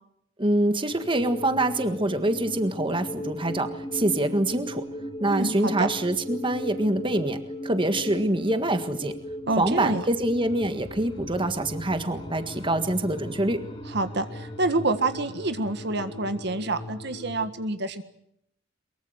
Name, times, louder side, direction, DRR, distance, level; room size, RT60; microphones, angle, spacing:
voice 1, 0.4-4.9 5.2-9.2 9.5-13.6, right 1 dB, 25° right, 8 dB, 1.7 m, -25 dB
sound 1, 0.9-17.5, equal, 30° left, 3.1 m, -37 dB
voice 2, 5.2-5.9 9.5-10.0 13.9-18.0, right 2 dB, 60° right, 9 dB, 1.7 m, -27 dB
23.0 x 23.0 x 8.0 m, 0.75 s
head